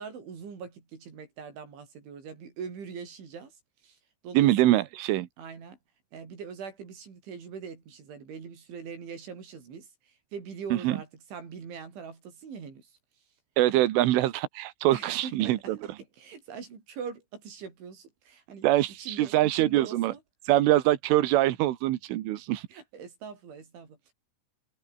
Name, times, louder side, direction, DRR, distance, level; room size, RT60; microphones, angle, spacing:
voice 1, 0.0-4.0 4.2-4.8 5.4-5.8 6.1-13.0 14.9-18.7 19.0-20.2 22.7-24.1, right 6 dB, 75° right, 8.1 m, -42 dB
voice 2, 4.4-5.3 10.7-11.0 13.6-15.6 18.6-20.1 20.5-22.7, right 15 dB, 90° right, 3.9 m, -24 dB
omnidirectional pair, 5.5 m